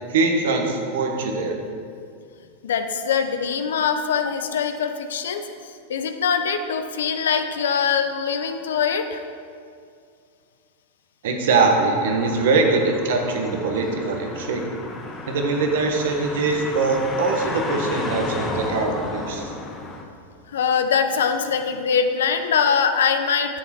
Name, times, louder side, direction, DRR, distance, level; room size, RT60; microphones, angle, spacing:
voice 1, 0.1-1.6 11.2-14.6 15.3-19.5, right 3 dB, 70° right, 3 dB, 1.4 m, -22 dB
voice 2, 2.6-5.4 5.9-9.2 20.5-23.6, left 6 dB, 75° left, 7 dB, 0.8 m, -22 dB
sound 1, 12.0-20.0, left 3 dB, 20° left, 1.2 m, -33 dB
10.5 x 7.2 x 4.5 m, 2.3 s
hypercardioid pair, 100°, 0 cm